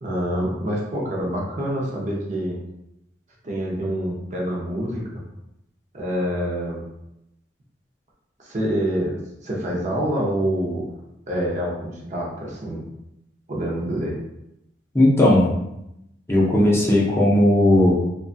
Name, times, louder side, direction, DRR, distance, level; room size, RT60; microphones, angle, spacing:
voice 1, 0.0-2.6 3.4-5.2 5.9-6.8 8.4-10.9 11.3-12.8 13.5-14.2, equal, 40° right, -3 dB, 0.6 m, -26 dB
voice 2, 14.9-15.5 16.3-17.9, left 1 dB, 15° left, -5 dB, 0.5 m, -16 dB
2.8 x 2.2 x 2.6 m, 0.85 s
head